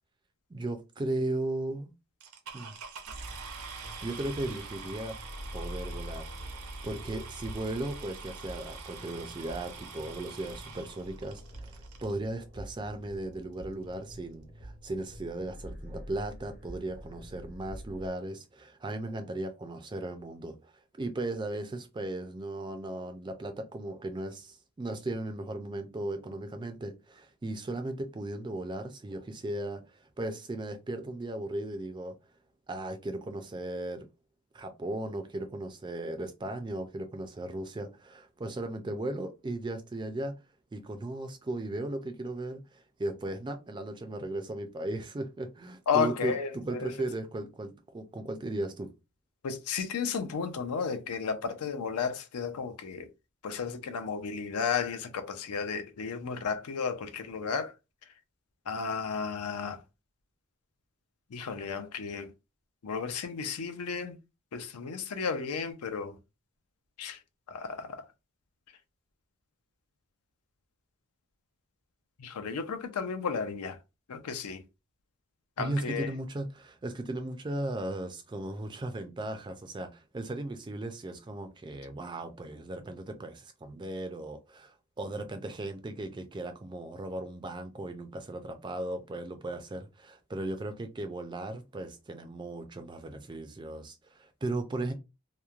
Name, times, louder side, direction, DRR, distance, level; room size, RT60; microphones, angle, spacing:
voice 1, 0.5-1.9 2.5-2.7 4.0-5.2 5.5-6.3 6.5-20.7 21.0-32.1 32.7-34.1 34.5-40.4 40.7-48.9 75.6-94.9, right 2 dB, 20° right, 0.3 m, -37 dB
sound 1, 2.2-12.1 12.9-13.0 13.5-13.6 13.8-14.1, right 5 dB, 80° right, 0.6 m, -46 dB
sound 2, 3.1-18.1, equal, 45° left, 0.8 m, -45 dB
voice 2, 45.9-46.9 49.4-53.1 53.4-57.7 58.7-59.8 61.3-62.3 62.8-64.2 64.5-66.2 67.0-67.2 67.5-68.0 72.2-73.8 74.1-74.6 75.6-76.1, left 6 dB, 85° left, 0.5 m, -33 dB
3.0 x 2.1 x 2.3 m
head